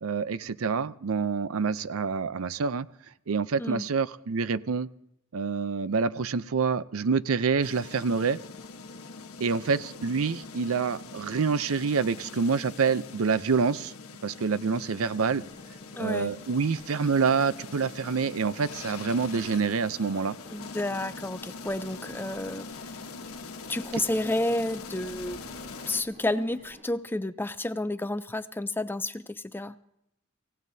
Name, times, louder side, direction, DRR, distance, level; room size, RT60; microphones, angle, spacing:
voice 1, 0.0-2.9 3.3-4.9 5.3-8.4 9.4-13.9 14.2-15.4 16.0-20.4, right 5 dB, 75° right, 16 dB, 0.5 m, -27 dB
sound 1, 7.6-26.0, left 4 dB, 90° left, 1.2 m, -43 dB
sound 2, 15.1-26.8, equal, 40° right, 4.6 m, -55 dB
voice 2, 16.0-16.3 20.5-22.7 23.7-25.4 25.9-29.8, left 1 dB, 10° left, 12 dB, 0.4 m, -30 dB
24.5 x 17.0 x 2.7 m, 0.77 s
head